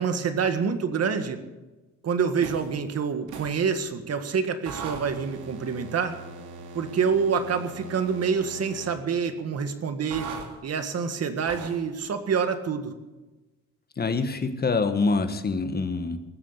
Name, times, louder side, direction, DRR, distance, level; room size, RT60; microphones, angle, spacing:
voice 1, 0.0-1.4 2.0-6.2 6.7-10.3 10.6-12.9, right 6 dB, 55° right, 8 dB, 1.8 m, -27 dB
sound 1, 2.4-2.7 3.3-3.6 4.6-9.0 10.1-10.5 11.5-11.8, right 4 dB, 80° right, 2.4 m, -40 dB
voice 2, 14.0-16.2, left 4 dB, 30° left, 9 dB, 1.6 m, -25 dB
19.5 x 7.6 x 8.2 m, 1.1 s
cardioid pair, 90°, 30 cm